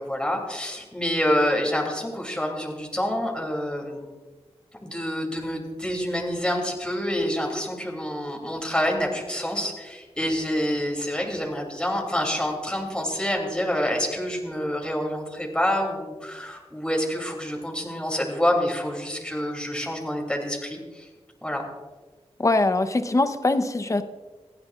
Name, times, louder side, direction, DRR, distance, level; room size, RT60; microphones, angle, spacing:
voice 1, 0.0-4.1 4.8-21.1 21.4-21.6, equal, 10° left, 0 dB, 2.9 m, -27 dB
voice 2, 22.4-24.0, left 2 dB, 30° left, 10 dB, 0.8 m, -22 dB
27.0 x 9.6 x 2.4 m, 1.3 s
wide cardioid pair, 95°, 11 cm